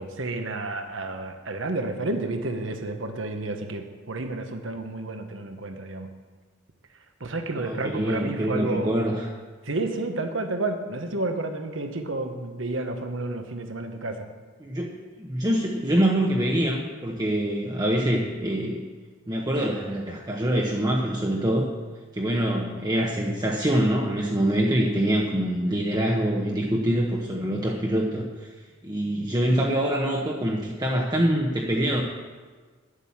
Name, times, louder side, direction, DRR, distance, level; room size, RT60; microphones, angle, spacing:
voice 1, 0.0-6.1 7.2-8.9 9.6-14.3, right 2 dB, 75° right, 6 dB, 1.2 m, -30 dB
voice 2, 7.6-9.3 14.6-14.9 15.2-18.8 19.3-21.7 22.1-28.5 28.8-32.0, right 1 dB, 20° right, -2 dB, 1.0 m, -25 dB
10.0 x 8.3 x 7.2 m, 1.4 s
head